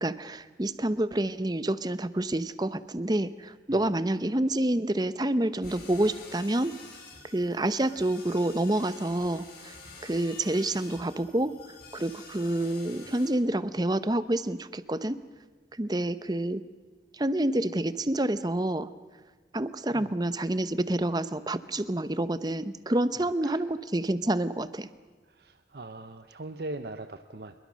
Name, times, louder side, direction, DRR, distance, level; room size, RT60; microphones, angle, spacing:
voice 1, 0.0-6.7 7.3-9.7 10.0-11.5 11.9-15.2 15.8-16.6 17.1-18.9 19.5-24.9, right 1 dB, 20° right, 14 dB, 0.8 m, -28 dB
sound 1, 5.6-13.3, left 4 dB, 60° left, 6.9 m, -48 dB
voice 2, 19.9-20.4 23.2-23.6 25.3-27.5, right 2 dB, 60° right, 8 dB, 0.9 m, -41 dB
26.0 x 22.5 x 6.3 m, 1.4 s
head